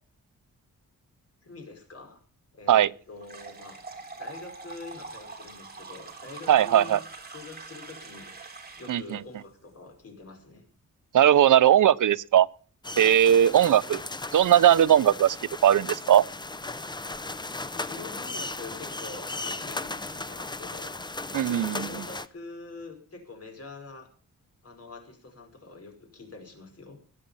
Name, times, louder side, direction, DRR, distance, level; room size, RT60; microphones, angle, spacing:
voice 1, 1.4-2.2 2.5-3.8 4.2-7.0 7.3-8.3 8.8-10.7 13.6-13.8 17.7-21.0 21.4-24.1 24.6-27.0, left 3 dB, 45° left, 5.4 m, -45 dB
sound 1, 3.2-9.1, right 3 dB, 30° right, 3.2 m, -44 dB
voice 2, 6.5-7.0 8.9-9.0 11.1-12.5 13.0-14.0 14.3-15.4 15.6-16.2 21.3-21.9, right 10 dB, 65° right, 0.7 m, -19 dB
sound 2, 12.8-22.3, left 2 dB, 15° left, 0.7 m, -36 dB
21.5 x 8.7 x 5.6 m
wide cardioid pair, 175°, 33 cm